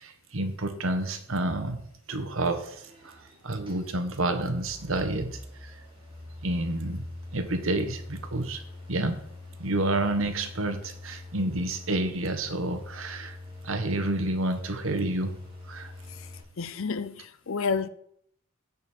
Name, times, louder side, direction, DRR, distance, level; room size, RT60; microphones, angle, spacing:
voice 1, 0.0-1.8 2.1-3.2 3.4-5.7 6.4-7.0 7.3-8.6 8.9-9.2 9.6-13.4 13.6-15.4 15.7-15.9, right 2 dB, 75° right, 1.3 m, -29 dB
sound 1, 2.4-16.4, left 2 dB, 25° right, 2.6 m, -44 dB
voice 2, 16.6-17.9, left 5 dB, 75° left, 0.6 m, -30 dB
15.5 x 5.4 x 4.4 m
head